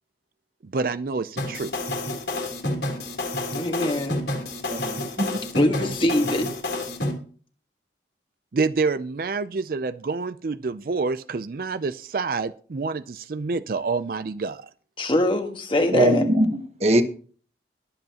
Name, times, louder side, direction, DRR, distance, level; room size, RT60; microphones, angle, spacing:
voice 1, 0.6-1.7 8.5-14.7, right 4 dB, 50° right, 0.4 m, -27 dB
sound 1, 1.4-7.1, left 2 dB, 75° left, 3.3 m, -29 dB
voice 2, 3.5-4.2 5.5-6.5 15.0-16.2, left 1 dB, 30° left, 1.4 m, -23 dB
voice 3, 4.7-5.4 15.9-17.0, equal, 35° right, 1.2 m, -21 dB
21.5 x 7.9 x 2.9 m
head